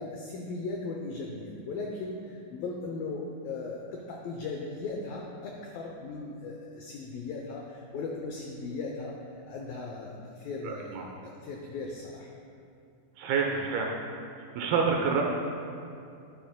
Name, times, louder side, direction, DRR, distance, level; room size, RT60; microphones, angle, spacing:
voice 1, 0.0-12.3 13.5-13.6, left 3 dB, 85° left, 0 dB, 2.0 m, -38 dB
voice 2, 10.6-11.0 13.2-14.0 14.6-15.2, right 5 dB, 75° right, 1 dB, 2.4 m, -27 dB
13.0 x 12.0 x 2.2 m, 2.5 s
omnidirectional pair, 5.0 m